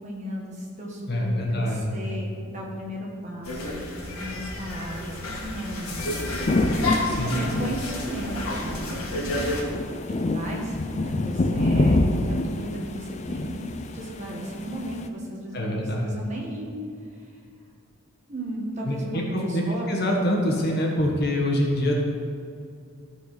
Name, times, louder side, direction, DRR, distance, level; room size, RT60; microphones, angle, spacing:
voice 1, 0.0-6.3 7.2-9.5 10.1-13.7 13.9-16.8 17.1-17.3 18.3-19.9, right 1 dB, 35° right, -3 dB, 1.7 m, -35 dB
voice 2, 1.1-1.9 7.0-7.3 15.5-16.1 18.8-22.0, left 1 dB, 50° left, -1 dB, 1.5 m, -25 dB
sound 1, 3.4-9.6, left 2 dB, 90° left, 1.8 m, -31 dB
sound 2, 6.0-15.1, left 2 dB, 30° left, 0.5 m, -27 dB
13.5 x 4.8 x 5.9 m, 2.4 s
head